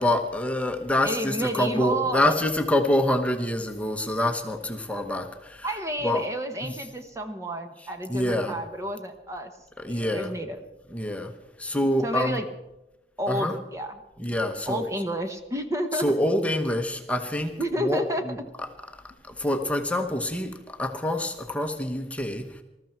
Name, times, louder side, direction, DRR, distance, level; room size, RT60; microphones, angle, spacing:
voice 1, 0.0-5.7 6.0-6.2 6.6-6.7 8.1-8.6 9.8-10.3 10.9-11.3 11.6-12.4 13.3-13.5 14.2-14.9 15.9-18.7 18.9-22.6, left 1 dB, 10° left, 5 dB, 1.0 m, -26 dB
voice 2, 1.0-2.3 5.6-9.5 9.9-10.6 12.0-12.4 13.2-13.9 14.2-14.4 14.7-16.1 17.6-18.2, equal, 15° right, 6 dB, 1.0 m, -30 dB
20.5 x 13.5 x 4.5 m, 0.96 s
head